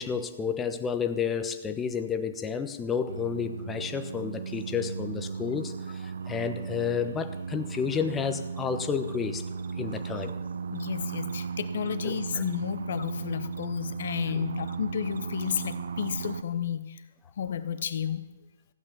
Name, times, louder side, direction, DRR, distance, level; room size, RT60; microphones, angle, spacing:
voice 1, 0.0-9.4 9.8-10.3 12.0-12.4 14.3-14.4, left 7 dB, 15° left, 8 dB, 1.1 m, -31 dB
sound 1, 3.1-16.4, right 5 dB, 65° right, 0.6 m, -36 dB
voice 2, 10.7-17.0 17.4-18.2, left 8 dB, 60° left, 12 dB, 1.0 m, -32 dB
15.5 x 8.8 x 6.9 m, 1.1 s
figure-of-eight pair, 120°, 0 cm